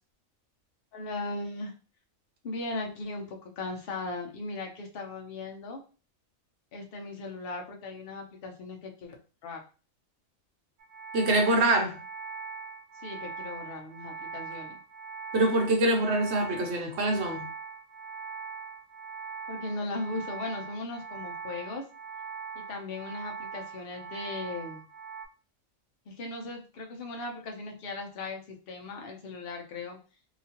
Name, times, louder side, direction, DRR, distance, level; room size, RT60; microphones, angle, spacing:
voice 1, 0.9-1.7 2.4-5.8 6.7-9.2 9.4-9.6 13.0-14.8 19.5-21.8 22.5-24.8 26.1-30.0, left 2 dB, 55° left, 2 dB, 0.8 m, -38 dB
sound 1, 10.8-25.3, right 5 dB, 85° right, 1.1 m, -41 dB
voice 2, 11.1-12.0 15.3-17.5, right 2 dB, 60° right, 2 dB, 0.9 m, -25 dB
2.9 x 2.3 x 2.8 m, 0.36 s
omnidirectional pair, 1.4 m